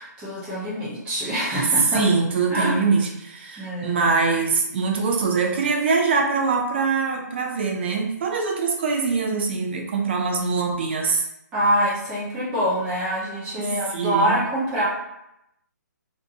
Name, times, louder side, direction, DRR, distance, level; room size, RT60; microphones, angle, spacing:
voice 1, 0.0-2.0 2.5-2.8 3.6-4.0 11.5-14.9, equal, 10° right, -8 dB, 0.7 m, -25 dB
voice 2, 1.8-11.3 13.6-14.4, right 4 dB, 35° right, 1 dB, 0.4 m, -23 dB
2.6 x 2.1 x 2.7 m, 0.83 s
hypercardioid pair, 160°, 10 cm